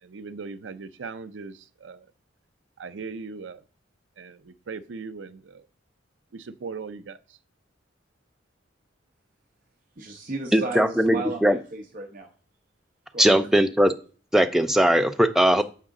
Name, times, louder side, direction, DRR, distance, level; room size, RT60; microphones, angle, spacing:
voice 1, 0.0-2.1 2.8-3.6 4.2-5.7 6.3-7.4, right 4 dB, 75° right, 12 dB, 0.5 m, -39 dB
voice 2, 10.0-12.3 13.1-13.3, right 2 dB, 45° right, 3 dB, 0.8 m, -34 dB
voice 3, 10.5-11.6 13.2-13.9 14.3-15.6, equal, ahead, 7 dB, 0.4 m, -19 dB
7.3 x 4.9 x 3.7 m, 0.39 s
head